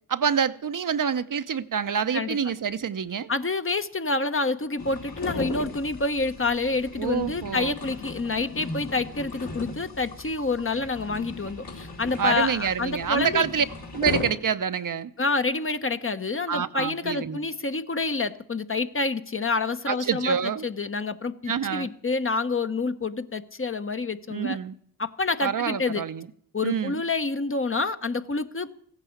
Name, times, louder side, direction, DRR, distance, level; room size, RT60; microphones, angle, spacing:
voice 1, 0.1-3.3 7.0-7.7 12.2-13.6 13.9-15.1 16.5-17.4 19.9-20.6 21.5-21.9 24.3-24.8 25.4-26.3 26.6-27.0, right 7 dB, 55° right, 0.8 m, -27 dB
voice 2, 3.3-13.4 15.2-20.4 20.6-24.6 25.0-26.0 26.5-28.8, left 3 dB, 35° left, 1.0 m, -28 dB
sound 1, 4.8-14.3, left 3 dB, 65° left, 3.1 m, -37 dB
15.5 x 9.0 x 7.2 m
cardioid pair, 50°, 39 cm